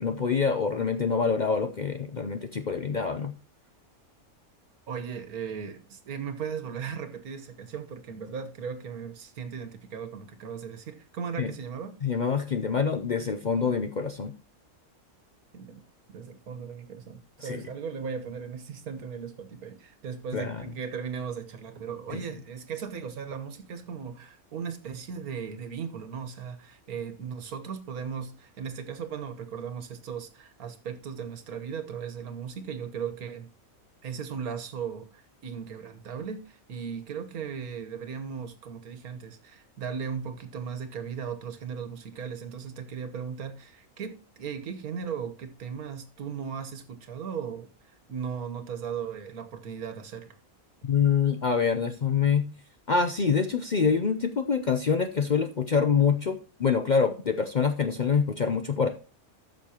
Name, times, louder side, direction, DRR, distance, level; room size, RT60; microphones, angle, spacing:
voice 1, 0.0-3.3 11.4-11.5 12.0-14.3 17.4-17.6 20.3-20.6 22.1-22.3 50.8-52.4 52.9-58.9, left 6 dB, 50° left, 0.5 m, -26 dB
voice 2, 4.9-11.9 15.5-15.8 16.1-33.5 34.0-47.7 48.1-50.3, right 7 dB, 85° right, 1.7 m, -37 dB
13.0 x 6.6 x 2.9 m
omnidirectional pair, 1.5 m